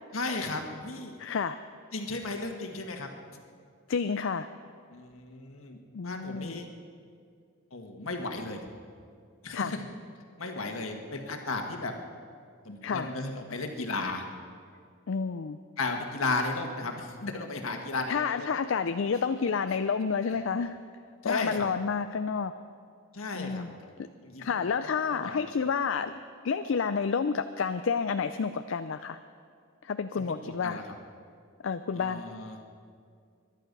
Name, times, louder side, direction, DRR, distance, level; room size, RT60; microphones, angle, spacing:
voice 1, 0.1-1.2 1.9-3.1 4.9-6.7 7.7-8.7 9.4-9.8 10.4-11.9 12.6-14.2 15.8-18.5 20.2-20.4 21.2-21.7 23.1-23.7 24.2-25.5 30.2-30.8 31.9-32.6, left 3 dB, 85° left, 3 dB, 1.7 m, -35 dB
voice 2, 1.2-1.6 3.9-4.5 5.9-6.6 9.5-9.7 10.6-10.7 12.8-13.1 15.1-15.6 18.1-20.8 21.2-22.5 23.3-23.8 24.4-26.1 26.4-29.2 29.8-30.8 31.6-32.2, left 5 dB, 65° left, 10 dB, 0.4 m, -30 dB
22.0 x 11.5 x 5.4 m, 2.3 s
head